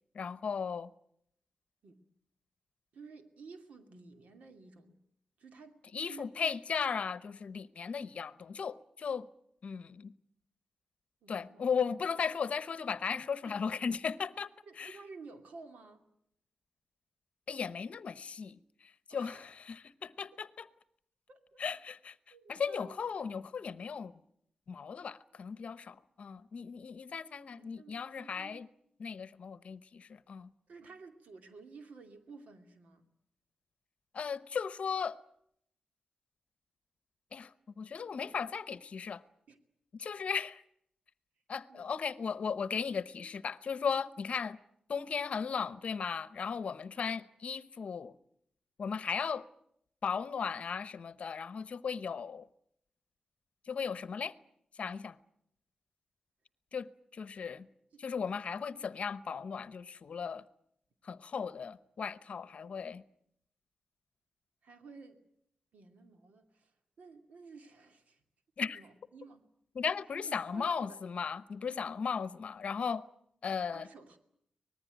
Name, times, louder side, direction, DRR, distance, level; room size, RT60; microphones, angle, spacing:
voice 1, 0.1-0.9 5.9-9.3 9.6-10.1 11.3-14.5 14.8-15.0 17.5-20.7 21.6-22.1 22.5-24.1 24.7-28.7 29.0-30.5 34.1-35.2 37.3-39.2 39.9-40.6 41.5-44.6 44.9-48.1 48.8-49.5 50.0-52.5 53.7-54.3 54.8-55.2 56.7-57.7 58.0-60.4 61.0-63.0 68.6-68.8 69.7-73.0 73.4-73.9, left 6 dB, 60° left, 0.9 m, -36 dB
voice 2, 2.9-5.0 5.4-5.8 6.0-6.5 8.0-8.1 11.2-11.7 13.5-13.6 14.7-16.0 19.1-19.5 21.3-21.6 22.3-23.1 27.5-28.7 30.7-33.0 39.5-39.6 41.7-41.9 42.2-42.3 47.0-47.2 57.9-58.0 64.6-65.2 65.7-66.7 67.0-68.2 68.6-69.4 70.3-71.0 73.7-74.2, right 4 dB, 90° right, 2.6 m, -53 dB
25.0 x 19.5 x 9.1 m
wide cardioid pair, 145°, 2 cm